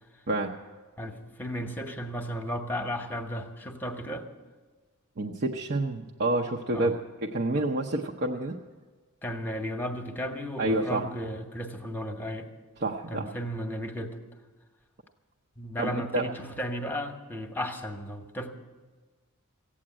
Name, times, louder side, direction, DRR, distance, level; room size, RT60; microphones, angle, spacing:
voice 1, 1.0-4.3 6.7-7.0 7.5-7.7 9.2-12.5 13.1-14.2 15.6-18.5, equal, 10° left, 4 dB, 1.0 m, -34 dB
voice 2, 5.2-8.6 10.6-11.0 12.8-13.3 15.8-16.3, right 2 dB, 45° right, 0 dB, 0.7 m, -28 dB
15.5 x 8.7 x 8.8 m, 1.3 s
head